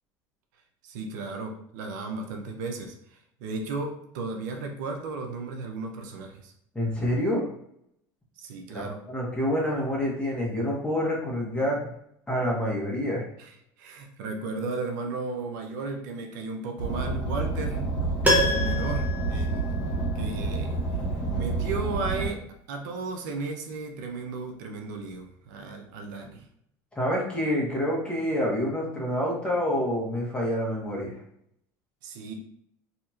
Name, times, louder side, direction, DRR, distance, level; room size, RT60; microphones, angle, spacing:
voice 1, 0.8-6.5 8.4-9.0 13.4-13.5 13.8-17.8 18.4-19.7 20.1-20.8 21.3-26.4 32.0-32.3, right 3 dB, 85° right, 3 dB, 0.5 m, -35 dB
voice 2, 6.7-7.5 8.7-11.9 12.3-13.3 26.9-31.1, equal, 10° left, -4 dB, 1.1 m, -27 dB
Car, 16.8-22.3, right 3 dB, 65° left, 1.1 m, -28 dB
Piano, 18.2-20.3 20.6-20.7, left 1 dB, 15° right, 0.8 m, -27 dB
2.8 x 2.8 x 2.4 m, 0.72 s
supercardioid pair, 105°, 10 cm